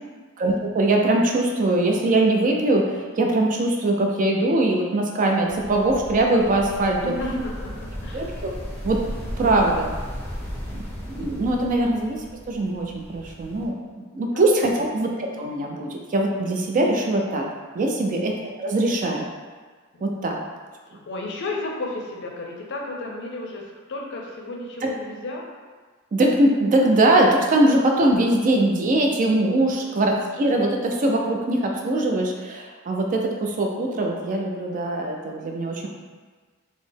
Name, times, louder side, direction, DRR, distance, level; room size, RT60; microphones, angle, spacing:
voice 1, 0.4-7.1 8.1-8.5 8.8-9.0 9.4-9.9 10.7-10.8 11.1-13.8 14.1-17.4 17.7-18.3 18.6-19.3 20.0-20.4 24.8-24.9 26.1-35.9, right 1 dB, 40° right, 1 dB, 0.3 m, -22 dB
sound 1, 5.5-13.7, equal, 10° left, 0.6 m, -35 dB
voice 2, 7.0-8.3 14.2-14.4 17.9-18.2 20.0-20.1 20.9-25.5 29.7-30.1, left 2 dB, 60° left, 0 dB, 0.5 m, -33 dB
3.9 x 2.0 x 3.3 m, 1.4 s
head